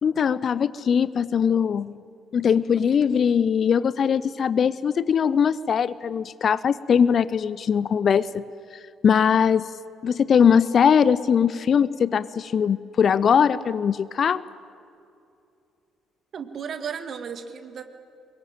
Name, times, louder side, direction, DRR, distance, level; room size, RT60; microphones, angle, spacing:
voice 1, 0.0-2.0 2.3-8.4 9.0-9.7 10.0-14.4, left 7 dB, 45° left, 18 dB, 0.6 m, -21 dB
voice 2, 16.3-17.8, right 7 dB, 45° right, 9 dB, 1.9 m, -34 dB
24.5 x 22.5 x 9.0 m, 2.5 s
figure-of-eight pair, 45°, 0 cm